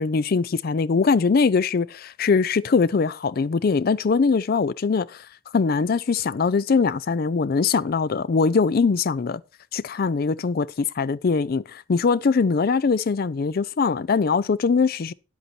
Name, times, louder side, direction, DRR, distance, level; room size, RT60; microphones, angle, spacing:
voice 1, 0.0-5.2 5.5-9.4 9.7-15.1, left 4 dB, 45° left, 0.4 m, -22 dB
10.0 x 8.1 x 4.3 m
head